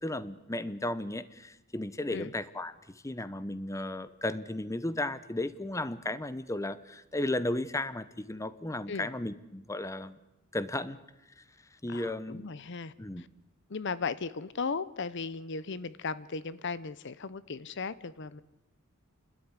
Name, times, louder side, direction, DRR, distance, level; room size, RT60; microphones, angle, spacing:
voice 1, 0.0-2.7 3.0-10.2 10.5-11.0 11.4-11.5 11.8-12.5 13.0-13.2, left 1 dB, 15° left, 14 dB, 0.8 m, -34 dB
voice 2, 11.9-13.3 13.7-18.4, left 4 dB, 55° left, 17 dB, 0.7 m, -36 dB
30.0 x 13.0 x 9.8 m, 0.98 s
head